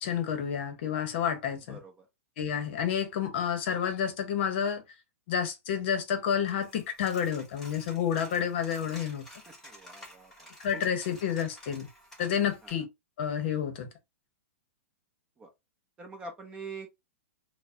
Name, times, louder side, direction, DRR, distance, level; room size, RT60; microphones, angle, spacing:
voice 1, 0.0-1.8 2.4-4.8 5.3-9.2 10.6-11.9 12.2-12.8 13.2-13.9, left 8 dB, 50° left, 0.8 m, -30 dB
voice 2, 1.7-2.1 9.6-10.8 12.6-12.7 15.4-15.5 16.0-17.0, right 3 dB, 15° right, 0.7 m, -45 dB
Coin (dropping), 6.5-12.7, equal, 5° left, 1.1 m, -51 dB
4.6 x 2.1 x 2.5 m
hypercardioid pair, 160°, 8 cm